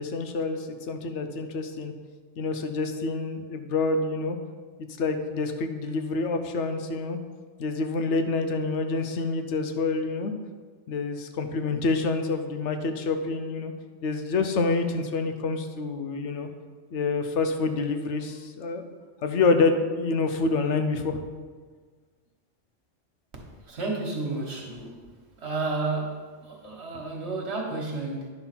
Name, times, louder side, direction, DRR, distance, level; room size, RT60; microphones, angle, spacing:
voice 1, 0.0-1.9 2.4-4.4 5.0-7.2 7.6-10.3 10.9-13.7 14.0-16.5 16.9-18.8 19.2-21.2, left 3 dB, 80° left, 7 dB, 1.0 m, -27 dB
voice 2, 23.3-25.0 25.4-28.3, right 3 dB, 65° right, 0 dB, 1.6 m, -32 dB
10.5 x 3.9 x 5.8 m, 1.5 s
omnidirectional pair, 1.2 m